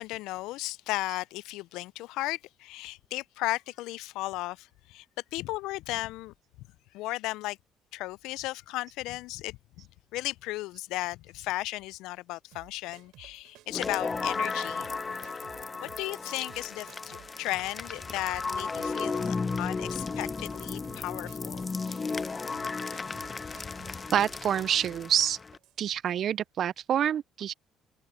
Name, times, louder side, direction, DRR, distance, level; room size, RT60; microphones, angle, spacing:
voice 1, 0.0-5.1 5.3-6.3 6.9-7.6 7.9-9.9 10.1-14.9 15.8-21.7, left 18 dB, 75° left, 0.4 m, -35 dB
sound 1, 12.5-25.8, right 16 dB, 75° right, 3.3 m, -55 dB
sound 2, 13.7-25.6, left 4 dB, 30° left, 0.8 m, -34 dB
voice 2, 24.1-25.4 25.8-27.5, right 9 dB, 60° right, 0.4 m, -27 dB
hypercardioid pair, 60°, 0 cm